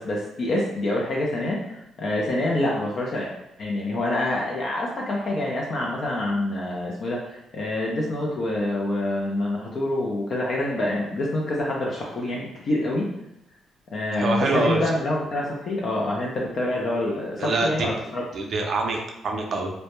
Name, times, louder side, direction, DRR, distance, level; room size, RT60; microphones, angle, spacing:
voice 1, 0.0-3.3 3.6-13.1 13.9-18.2, left 1 dB, 55° left, -3 dB, 0.4 m, -26 dB
voice 2, 14.1-14.8 17.4-17.9 18.3-19.7, right 3 dB, 55° right, 1 dB, 0.4 m, -25 dB
2.1 x 2.0 x 2.9 m, 0.85 s
cardioid pair, 90°, 0 cm